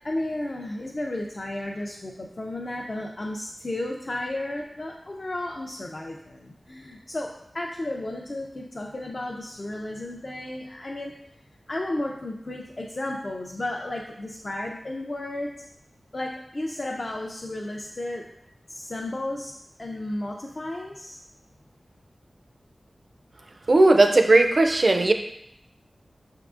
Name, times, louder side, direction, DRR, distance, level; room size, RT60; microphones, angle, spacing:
voice 1, 0.0-7.3 7.5-11.1 11.7-15.7 16.1-18.2 18.7-19.5 19.8-21.2, left 1 dB, 45° left, 0 dB, 0.4 m, -33 dB
voice 2, 23.7-25.1, right 2 dB, 50° right, 6 dB, 0.4 m, -17 dB
5.9 x 3.6 x 2.4 m, 0.77 s
wide cardioid pair, 80°, 0 cm